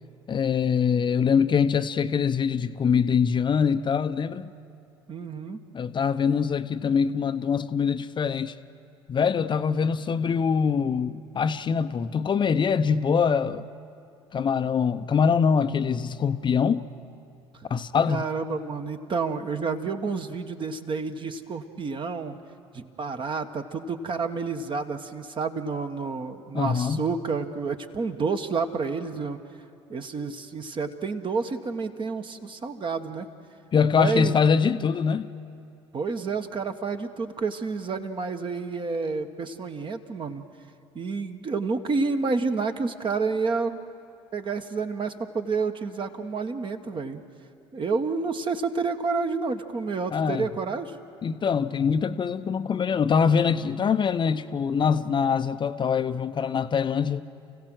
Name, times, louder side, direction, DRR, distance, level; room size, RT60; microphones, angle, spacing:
voice 1, 0.3-4.5 5.7-8.6 9.1-13.6 14.3-16.8 17.7-18.2 26.5-27.1 33.7-35.3 50.1-50.5 51.2-57.2, left 6 dB, 30° left, 10 dB, 0.7 m, -24 dB
voice 2, 5.1-5.6 18.1-22.4 22.7-29.4 29.9-33.3 34.0-34.3 35.9-40.4 40.9-43.8 44.3-47.2 47.7-51.0, right 4 dB, 35° right, 7 dB, 1.4 m, -29 dB
29.5 x 16.0 x 6.4 m, 2.6 s
hypercardioid pair, 65°, 15 cm